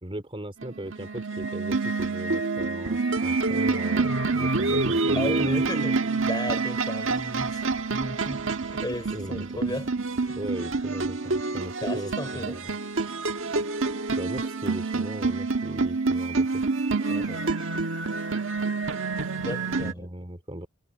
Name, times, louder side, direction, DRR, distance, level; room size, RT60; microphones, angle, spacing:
voice 1, 0.0-5.6 9.1-9.6 10.3-12.8 14.2-16.6 19.8-20.7, right 1 dB, 25° right, 3.2 m, -38 dB
sound 1, 0.6-19.9, right 3 dB, 60° right, 1.6 m, -27 dB
voice 2, 5.1-7.7 7.9-9.9 10.3-10.4 11.8-12.6 17.1-17.6 19.4-20.1, left 1 dB, 20° left, 6.0 m, -35 dB
head